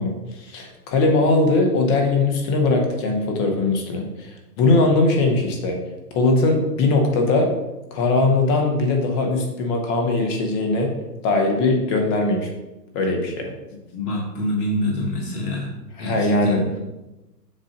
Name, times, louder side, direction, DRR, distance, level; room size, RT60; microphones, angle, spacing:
voice 1, 0.0-5.8 6.1-7.5 7.9-10.9 11.2-12.5 12.9-13.5 16.0-16.6, left 2 dB, 25° left, 2 dB, 0.9 m, -20 dB
voice 2, 13.9-15.7 16.0-16.8, left 1 dB, 65° left, -2 dB, 1.4 m, -26 dB
7.4 x 2.5 x 5.1 m, 1.0 s
hypercardioid pair, 125°, 49 cm